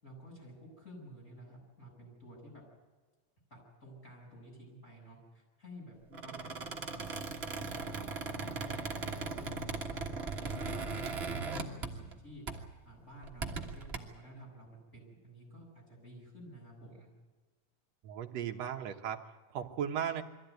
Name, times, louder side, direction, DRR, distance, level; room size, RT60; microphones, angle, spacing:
voice 1, 0.0-2.6 3.5-8.1 8.5-12.4 12.8-17.1, equal, 20° left, -2 dB, 7.9 m, -52 dB
Squeak, 6.1-12.2 12.5-12.7 13.2-14.0, right 4 dB, 45° right, 0.7 m, -38 dB
voice 2, 18.0-20.2, right 9 dB, 60° right, 4 dB, 2.1 m, -37 dB
23.0 x 15.0 x 9.3 m, 1.3 s
omnidirectional pair, 3.7 m